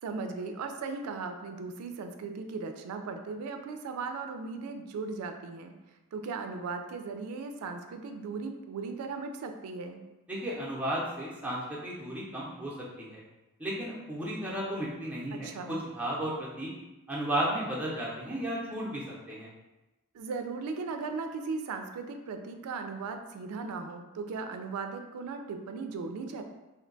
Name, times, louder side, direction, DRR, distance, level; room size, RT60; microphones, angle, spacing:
voice 1, 0.0-5.7 6.1-10.0 15.3-15.8 20.1-26.4, right 4 dB, 90° right, 6 dB, 0.3 m, -37 dB
voice 2, 10.3-13.2 13.6-16.7 17.1-19.5, right 1 dB, 5° right, -6 dB, 0.6 m, -34 dB
2.6 x 2.2 x 3.8 m, 1.0 s
head